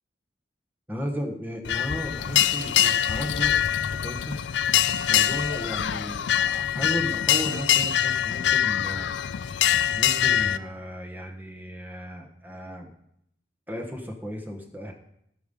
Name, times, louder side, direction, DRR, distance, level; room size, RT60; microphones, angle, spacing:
voice 1, 0.9-3.6 4.0-4.4 4.9-9.1 9.9-12.9 13.7-14.9, equal, 10° right, 2 dB, 1.3 m, -35 dB
sound 1, 1.6-10.6, left 10 dB, 85° left, 0.4 m, -24 dB
11.5 x 9.2 x 5.4 m, 0.74 s
head